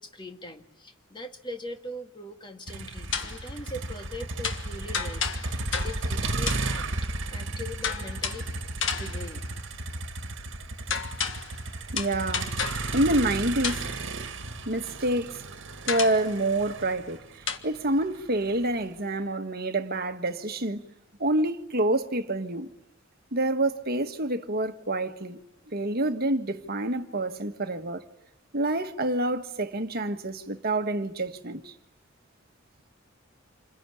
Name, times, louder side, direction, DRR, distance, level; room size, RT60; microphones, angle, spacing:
voice 1, 0.0-6.9 7.3-8.5 8.9-9.4, left 1 dB, 25° left, 2.0 m, -41 dB
Motor vehicle (road), 2.7-18.8, right 2 dB, 65° right, 1.8 m, -34 dB
sound 1, 3.1-3.5 4.4-6.2 6.5-6.8 7.8-8.5 8.8-9.3 10.9-11.6 12.0-13.0 13.6-14.0 15.9-16.3 17.5-17.6, left 6 dB, 65° left, 1.7 m, -32 dB
voice 2, 11.9-12.5 12.9-13.8 14.6-15.4 15.9-17.2 17.6-20.8 21.2-22.7 23.3-25.4 25.7-28.0 28.5-31.7, right 1 dB, 50° right, 1.6 m, -27 dB
28.0 x 21.5 x 9.9 m
head